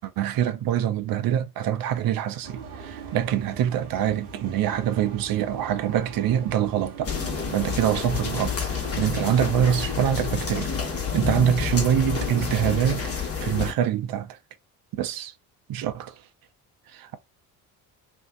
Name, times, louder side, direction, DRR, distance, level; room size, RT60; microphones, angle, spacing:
voice 1, 0.0-7.1 7.5-10.7 11.1-14.4 15.0-15.3 15.7-16.1 16.9-17.2, right 10 dB, 45° right, 0.7 m, -25 dB
sound 1, 2.4-13.2, right 5 dB, 75° right, 0.9 m, -41 dB
sound 2, 7.0-13.7, left 6 dB, 30° left, 1.2 m, -29 dB
2.7 x 2.2 x 3.6 m
hypercardioid pair, 55°, 48 cm